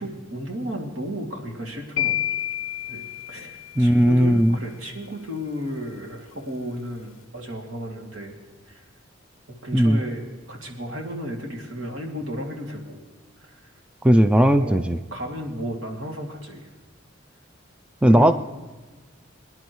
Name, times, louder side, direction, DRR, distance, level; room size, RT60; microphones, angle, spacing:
voice 1, 0.0-2.2 2.9-3.0 3.3-8.3 8.7-8.8 9.6-10.2 10.5-13.0 13.4-13.6 14.6-16.7 18.1-18.3, equal, 70° right, 0 dB, 2.5 m, -33 dB
sound 1, 2.0-4.1, left 13 dB, 75° left, 0.4 m, -29 dB
voice 2, 3.8-4.6 9.7-10.0 14.0-15.0 18.0-18.3, equal, 5° right, 9 dB, 0.3 m, -17 dB
23.5 x 10.5 x 3.1 m, 1.3 s
head